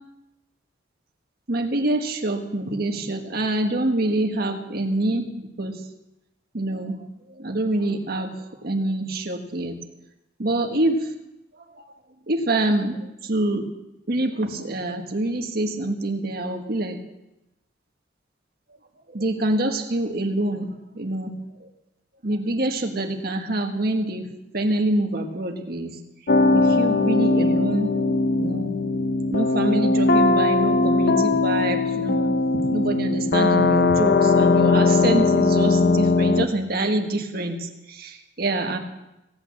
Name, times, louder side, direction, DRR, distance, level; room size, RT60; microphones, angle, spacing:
voice 1, 1.5-5.8 6.5-7.0 7.4-9.8 10.4-11.1 11.7-11.9 12.3-13.7 14.1-17.0 19.1-20.7 20.9-21.7 22.2-24.3 24.5-26.0 26.5-27.9 28.4-28.8 29.3-38.8, right 1 dB, 55° right, 4 dB, 1.5 m, -26 dB
sound 1, 26.3-36.5, left 3 dB, 55° left, 0.7 m, -20 dB
16.5 x 8.7 x 7.3 m, 0.94 s
head